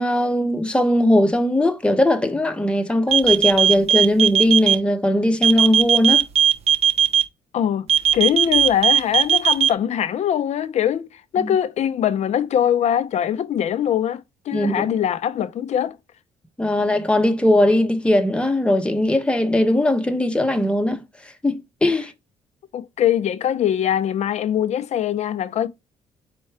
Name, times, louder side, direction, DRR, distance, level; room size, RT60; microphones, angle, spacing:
voice 1, 0.0-6.2 11.4-11.5 14.5-14.9 16.6-21.0 21.4-22.1, left 1 dB, 10° left, 0.8 m, -19 dB
sound 1, 3.1-4.7 5.4-7.2 7.9-9.7, right 9 dB, 50° right, 0.7 m, -16 dB
voice 2, 7.5-7.9 8.1-16.0 22.7-25.7, left 9 dB, 55° left, 0.6 m, -22 dB
4.4 x 2.3 x 4.5 m
supercardioid pair, 75°, 13 cm